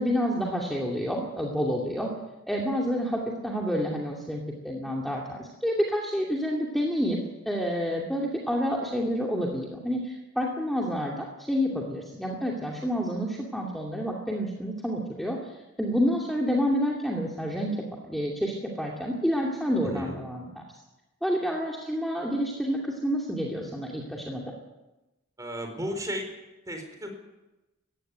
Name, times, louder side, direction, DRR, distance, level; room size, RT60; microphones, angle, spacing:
voice 1, 0.0-2.1 2.5-7.2 7.5-17.8 18.1-20.6 21.2-24.5, equal, ahead, -2 dB, 2.5 m, -29 dB
voice 2, 19.8-20.2 25.4-26.3 26.7-27.1, equal, 15° right, 4 dB, 4.4 m, -34 dB
18.5 x 15.5 x 9.5 m, 1.0 s
head